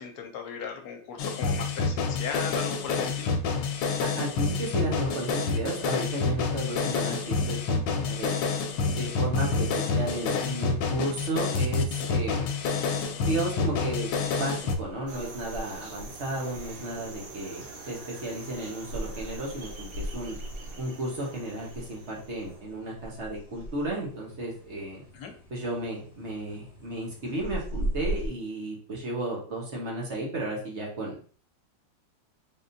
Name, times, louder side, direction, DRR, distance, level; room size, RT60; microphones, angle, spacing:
voice 1, 0.0-3.3 25.1-25.3, left 6 dB, 65° left, 3 dB, 1.2 m, -37 dB
sound 1, 1.2-14.8, left 4 dB, 80° left, 1.3 m, -28 dB
voice 2, 4.0-8.3 9.0-12.6 13.3-20.4 20.8-25.0 25.5-31.2, right 1 dB, 40° right, -3 dB, 1.3 m, -33 dB
sound 2, 10.5-28.3, equal, 25° left, 1.1 m, -41 dB
sound 3, 15.1-22.6, right 3 dB, 75° right, 0.5 m, -45 dB
3.8 x 3.6 x 2.6 m, 0.43 s
omnidirectional pair, 2.0 m